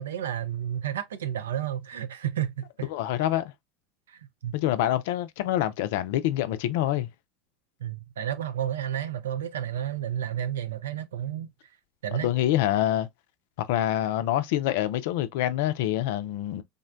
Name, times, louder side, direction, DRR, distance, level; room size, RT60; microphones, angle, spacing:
voice 1, 0.0-2.9 4.1-4.5 7.8-11.5 12.0-12.3, right 10 dB, 80° right, 0.4 m, -31 dB
voice 2, 2.9-3.5 4.5-7.1 12.1-13.1 13.6-16.6, left 13 dB, 65° left, 0.4 m, -26 dB
3.6 x 2.1 x 2.4 m
hypercardioid pair, 80°, 0 cm